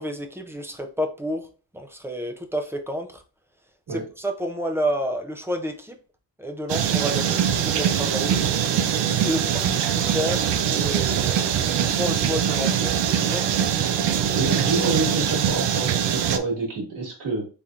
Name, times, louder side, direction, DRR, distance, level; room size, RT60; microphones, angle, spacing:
voice 1, 0.0-1.4 1.7-3.1 3.9-6.0 6.4-8.4 9.2-10.4 10.7-11.4 11.8-12.9 13.2-13.5, equal, 5° right, 0.4 m, -29 dB
sound 1, 6.7-16.4, right 9 dB, 75° right, 0.6 m, -23 dB
voice 2, 14.3-17.5, right 3 dB, 45° right, 1.9 m, -27 dB
4.2 x 3.5 x 2.4 m
wide cardioid pair, 160°, 42 cm